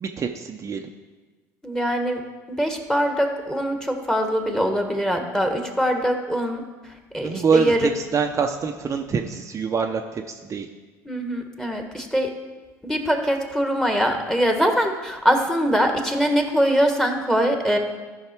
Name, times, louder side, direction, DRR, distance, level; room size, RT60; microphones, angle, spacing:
voice 1, 0.0-0.9 7.2-10.7, right 5 dB, 35° right, 3 dB, 0.7 m, -25 dB
voice 2, 1.6-2.2 2.5-6.6 7.1-7.9 11.0-12.3 12.8-17.8, equal, 5° left, 4 dB, 1.5 m, -22 dB
13.5 x 5.6 x 4.5 m, 1.3 s
supercardioid pair, 80°, 9 cm